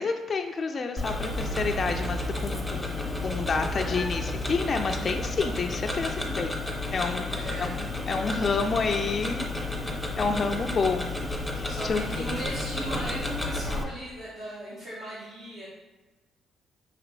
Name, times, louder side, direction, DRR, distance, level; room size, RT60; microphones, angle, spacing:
voice 1, 0.0-6.5 6.9-9.5 9.8-11.1 11.5-12.0, left 4 dB, 40° left, 4 dB, 0.3 m, -29 dB
Tick-tock, 1.0-13.8, left 2 dB, 5° left, 0.7 m, -31 dB
voice 2, 2.9-3.2 6.0-6.5 7.3-7.8 11.6-15.7, right 1 dB, 55° right, -9 dB, 1.3 m, -38 dB
4.9 x 2.9 x 3.1 m, 1.1 s
cardioid pair, 90°, 0 cm